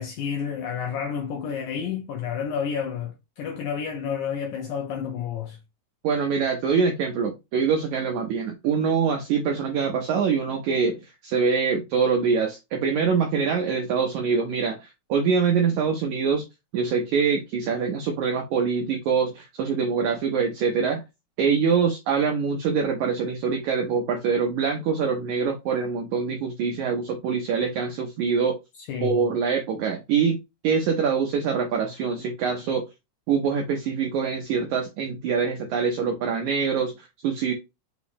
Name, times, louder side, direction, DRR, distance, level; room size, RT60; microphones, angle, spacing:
voice 1, 0.0-5.6 28.8-29.2, left 7 dB, 80° left, 1.7 m, -30 dB
voice 2, 6.0-16.4 16.7-21.0 21.4-28.6 29.0-30.4 30.6-32.8 33.3-37.5, right 6 dB, 85° right, 1.7 m, -24 dB
5.7 x 2.0 x 4.1 m
omnidirectional pair, 4.1 m